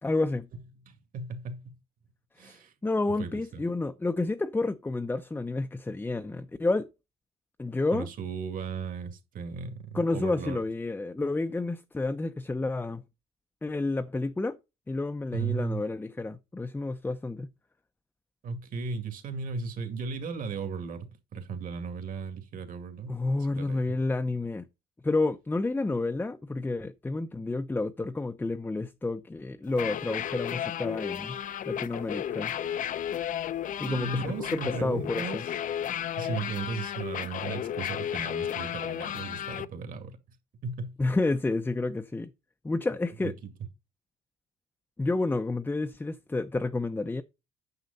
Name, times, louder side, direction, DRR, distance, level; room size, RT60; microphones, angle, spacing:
voice 1, 0.0-0.5 2.4-6.9 7.6-8.1 9.9-13.0 13.6-14.6 14.9-17.5 23.1-24.6 25.0-31.4 31.7-32.5 33.8-34.2 34.5-35.4 41.0-42.3 42.6-43.3 45.0-47.2, left 2 dB, 10° left, 0.6 m, -30 dB
voice 2, 0.9-1.7 2.4-2.7 3.2-3.6 7.9-10.6 15.3-15.8 18.4-23.2 23.5-23.9 33.8-35.4 36.2-40.2 40.6-40.9 43.2-43.5, right 5 dB, 55° right, 2.3 m, -36 dB
sound 1, 29.7-39.7, left 10 dB, 50° left, 0.6 m, -33 dB
9.5 x 6.5 x 4.0 m
cardioid pair, 110°, 17 cm